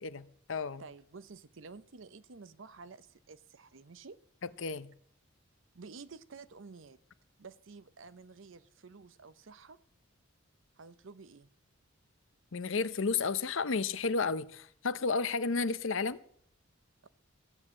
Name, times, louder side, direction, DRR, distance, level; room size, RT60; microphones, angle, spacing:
voice 1, 0.0-0.8 4.6-4.9 12.5-16.2, left 4 dB, 65° left, 15 dB, 0.7 m, -32 dB
voice 2, 0.8-4.2 5.7-7.0 7.4-9.8 10.8-11.5 17.0-17.1, right 4 dB, 60° right, 15 dB, 0.7 m, -51 dB
14.0 x 8.1 x 7.4 m, 0.63 s
head